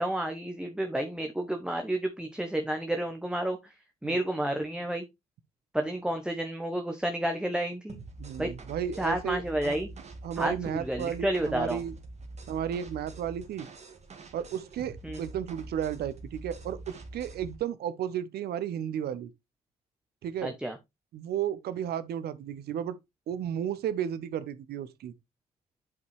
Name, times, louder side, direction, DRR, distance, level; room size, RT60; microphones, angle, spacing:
voice 1, 0.0-3.7 4.0-5.0 5.7-8.0 8.4-8.5 9.0-9.9 10.4-11.8 15.0-15.2 20.4-20.8, right 1 dB, 5° right, 1.0 m, -30 dB
sound 1, 7.9-17.6, right 2 dB, 35° right, 1.9 m, -45 dB
voice 2, 8.2-9.8 10.2-11.9 12.5-13.7 14.3-19.3 20.2-20.5 21.1-23.0 23.3-25.1, right 9 dB, 55° right, 0.8 m, -33 dB
9.4 x 5.4 x 3.1 m
figure-of-eight pair, 45°, 20 cm